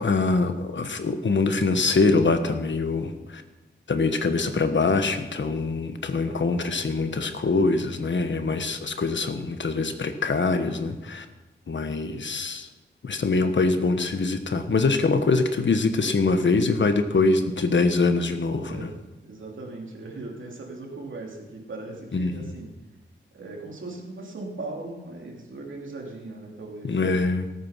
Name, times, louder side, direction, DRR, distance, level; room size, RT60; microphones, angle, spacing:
voice 1, 0.0-3.4 3.9-11.2 11.7-12.7 13.0-18.9 22.1-22.5 26.8-27.5, left 3 dB, 75° left, 8 dB, 1.3 m, -24 dB
voice 2, 18.6-18.9 19.2-22.7 23.3-26.9, right 2 dB, 90° right, -1 dB, 2.8 m, -38 dB
18.0 x 8.7 x 5.7 m, 1.1 s
wide cardioid pair, 70°, 20 cm